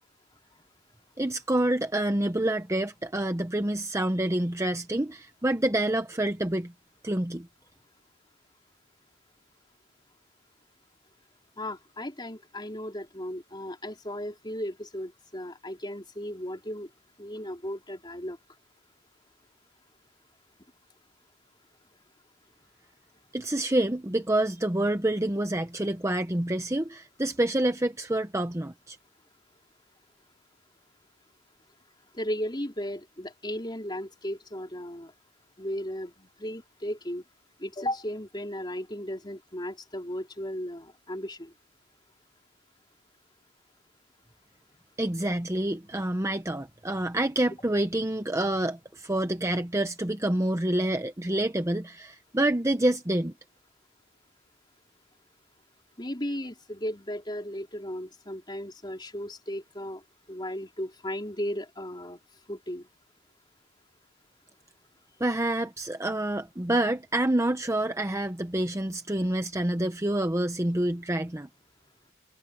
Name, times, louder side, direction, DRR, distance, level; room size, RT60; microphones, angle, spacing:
voice 1, 1.2-6.7 7.0-7.5 23.3-29.0 45.0-53.3 65.2-71.5, right 1 dB, 15° right, 0.8 m, -27 dB
voice 2, 11.6-16.9 17.2-18.4 32.1-35.1 35.6-37.2 37.6-41.5 56.0-60.0 60.3-62.2 62.5-62.9, equal, 20° left, 4.3 m, -35 dB
head